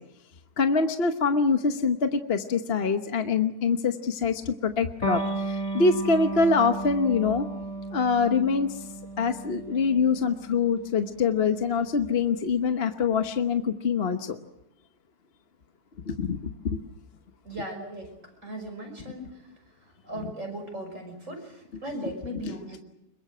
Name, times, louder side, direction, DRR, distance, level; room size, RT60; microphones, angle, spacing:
voice 1, 0.6-7.5 7.9-8.8 9.2-14.4 16.1-16.8 22.0-22.1 22.4-22.6, left 5 dB, 45° left, 7 dB, 1.2 m, -25 dB
Electric guitar, 5.0-12.2, right 2 dB, 20° left, 3.1 m, -34 dB
voice 2, 17.4-18.1 18.4-19.4 20.0-22.8, right 1 dB, 55° right, 4 dB, 6.4 m, -37 dB
26.0 x 22.5 x 7.8 m, 0.84 s
omnidirectional pair, 1.6 m